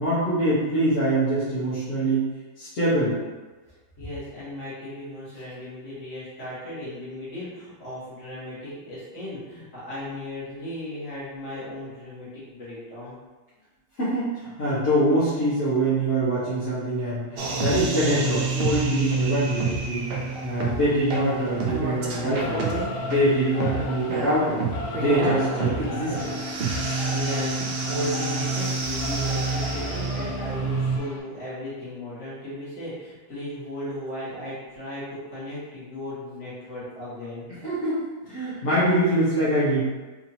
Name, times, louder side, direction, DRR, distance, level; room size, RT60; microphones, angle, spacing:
voice 1, 0.0-2.2 2.6-3.2 14.0-22.6 23.0-24.6 25.0-26.3 37.6-39.8, right 1 dB, 60° left, -13 dB, 1.5 m, -24 dB
voice 2, 4.0-13.1 27.1-37.5, left 1 dB, 40° left, -10 dB, 1.9 m, -36 dB
sound 1, 17.4-31.0, right 4 dB, 65° right, 0.6 m, -28 dB
Singing / Musical instrument, 22.3-31.2, left 3 dB, 80° left, 1.2 m, -36 dB
4.4 x 2.7 x 2.8 m, 1.2 s
omnidirectional pair, 1.7 m